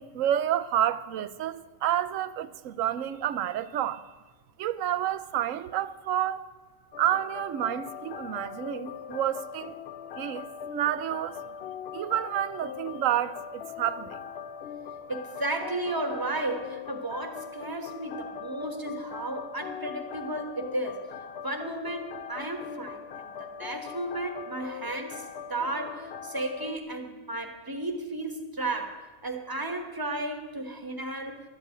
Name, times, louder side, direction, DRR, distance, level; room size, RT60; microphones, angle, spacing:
voice 1, 0.0-4.1 4.6-6.4 7.0-9.8 10.2-11.4 11.9-14.2, right 11 dB, 75° right, 1.0 m, -29 dB
sound 1, 6.9-26.8, left 7 dB, 60° left, 0.7 m, -40 dB
voice 2, 15.1-21.1 21.4-25.2 25.5-31.4, right 2 dB, 15° right, 1.1 m, -34 dB
12.0 x 8.1 x 9.3 m
omnidirectional pair, 1.4 m